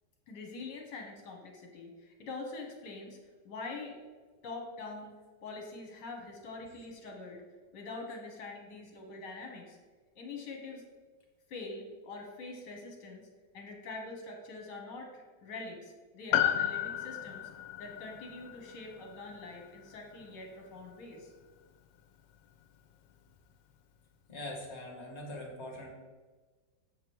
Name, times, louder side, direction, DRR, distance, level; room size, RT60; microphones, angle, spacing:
voice 1, 0.3-3.2 3.5-4.0 4.4-5.1 5.4-7.4 7.7-9.8 10.2-10.8 11.5-13.2 13.5-17.5 17.8-21.3, left 3 dB, 65° left, 1 dB, 1.8 m, -44 dB
Piano, 16.3-20.9 21.2-21.3, left 11 dB, 85° left, 1.3 m, -34 dB
voice 2, 24.3-25.9, left 1 dB, 40° left, -1 dB, 2.2 m, -42 dB
7.6 x 6.0 x 4.6 m, 1.4 s
omnidirectional pair, 2.0 m